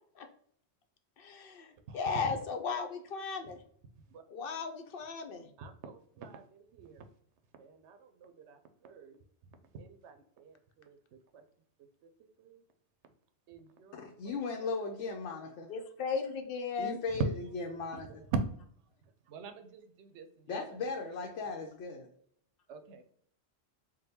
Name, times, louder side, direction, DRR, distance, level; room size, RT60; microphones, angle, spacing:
voice 1, 1.2-3.6 4.3-5.5 15.7-17.0, left 5 dB, 60° left, 0.7 m, -36 dB
voice 2, 1.9-2.2 4.1-4.2 5.6-7.1 7.5-9.2 9.4-11.4 12.0-12.6 13.5-14.9 17.1-17.3 18.1-18.4 19.0-21.2 22.7-23.1, right 4 dB, 85° right, 0.9 m, -42 dB
voice 3, 13.9-15.7 16.8-17.2 17.5-18.2 20.5-22.1, left 4 dB, 90° left, 0.9 m, -37 dB
3.7 x 2.2 x 4.1 m
omnidirectional pair, 1.2 m